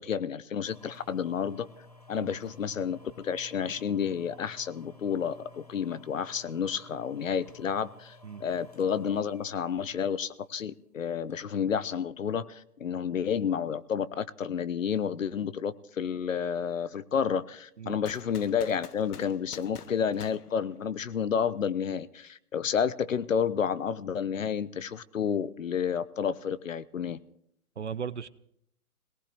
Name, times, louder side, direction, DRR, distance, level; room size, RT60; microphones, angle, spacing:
voice 1, 0.0-1.7 2.1-27.2, left 7 dB, 60° left, 17 dB, 0.8 m, -30 dB
sound 1, 0.7-10.7 11.3-11.4, left 2 dB, 25° left, 0.6 m, -55 dB
sound 2, 18.1-21.2, left 7 dB, 90° left, 1.2 m, -48 dB
voice 2, 27.8-28.3, right 7 dB, 50° right, 17 dB, 0.6 m, -37 dB
22.5 x 18.5 x 3.4 m, 0.71 s
hypercardioid pair, 180°, 44 cm